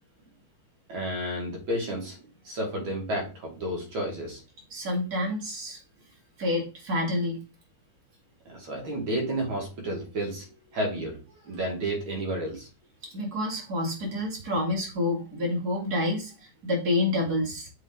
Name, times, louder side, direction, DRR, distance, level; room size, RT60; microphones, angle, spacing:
voice 1, 0.9-4.4 8.5-10.5 10.7-11.2 11.4-12.7, right 1 dB, 70° right, 2.6 m, -31 dB
voice 2, 4.7-5.8 6.4-7.4 13.1-17.7, left 2 dB, 45° right, 2.6 m, -28 dB
7.5 x 3.6 x 3.8 m
omnidirectional pair, 2.3 m